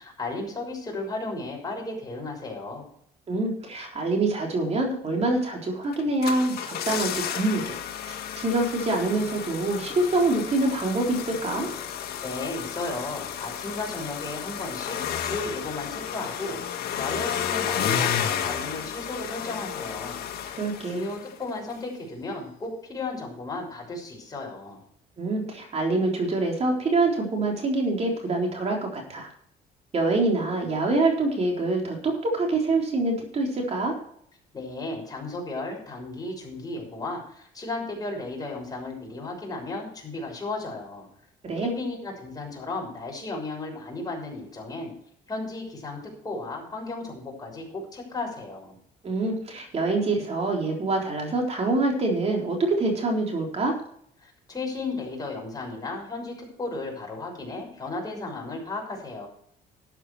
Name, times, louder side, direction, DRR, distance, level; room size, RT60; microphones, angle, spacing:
voice 1, 0.0-2.8 12.2-20.2 20.8-24.8 34.5-41.1 41.6-44.9 45.3-48.7 54.2-59.3, left 2 dB, 20° left, -1 dB, 6.5 m, -34 dB
voice 2, 3.3-7.7 8.0-11.7 20.6-21.0 25.2-29.3 29.9-33.9 41.4-41.7 49.0-53.8, right 2 dB, 40° right, 1 dB, 3.7 m, -25 dB
sound 1, 5.9-21.4 21.7-21.8, left 9 dB, 65° left, 1.7 m, -32 dB
12.5 x 8.9 x 4.8 m, 0.65 s
cardioid pair, 110°, 17 cm